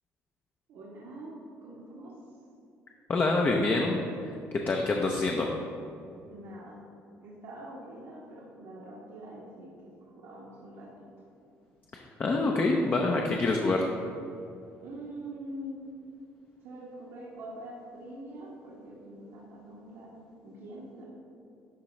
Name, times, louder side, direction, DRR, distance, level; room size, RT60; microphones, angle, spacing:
voice 1, 0.7-1.3 1.6-2.1 6.3-6.9 7.2-9.7 10.0-10.9 14.8-15.8 16.6-21.0, right 1 dB, 80° right, -6 dB, 1.3 m, -44 dB
voice 2, 3.1-4.3 4.7-5.5 11.9-13.9, left 2 dB, 35° left, 1 dB, 0.6 m, -26 dB
11.0 x 3.8 x 3.2 m, 2.6 s
cardioid pair, 90°, 5 cm